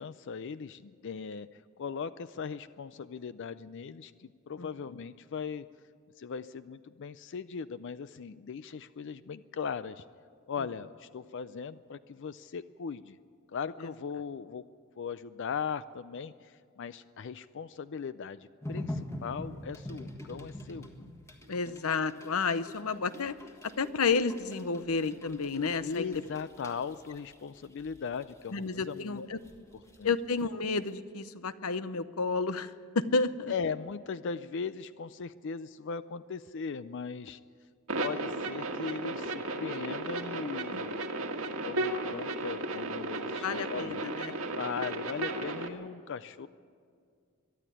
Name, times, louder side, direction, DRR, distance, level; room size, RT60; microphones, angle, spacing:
voice 1, 0.0-5.7 6.2-10.0 10.5-13.2 13.5-14.6 15.0-20.9 25.8-29.3 30.0-30.1 33.5-37.4 38.0-41.1 41.4-44.0 44.5-46.5, left 6 dB, 55° left, 14 dB, 0.4 m, -39 dB
sound 1, 18.6-30.4 30.9-31.0, left 1 dB, 15° left, 1.6 m, -45 dB
voice 2, 21.5-23.4 23.6-26.2 28.5-29.4 30.0-33.5 40.7-40.8 43.4-44.3, left 4 dB, 80° left, 14 dB, 0.8 m, -31 dB
sound 2, 37.9-45.7, right 2 dB, 75° right, 1.6 m, -34 dB
22.5 x 12.0 x 9.9 m, 2.2 s
head